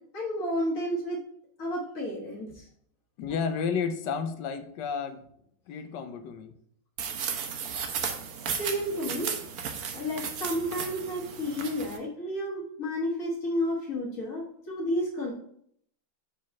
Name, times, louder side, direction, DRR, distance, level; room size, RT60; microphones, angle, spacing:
voice 1, 0.1-1.2 1.6-2.7 8.6-9.3 9.9-15.3, equal, 50° left, -5 dB, 1.7 m, -31 dB
voice 2, 3.2-5.2 5.7-6.5, left 6 dB, 80° left, 9 dB, 1.3 m, -31 dB
sound 1, 7.0-12.0, right 7 dB, 60° right, 1.2 m, -34 dB
4.8 x 4.2 x 5.9 m, 0.67 s
omnidirectional pair, 2.0 m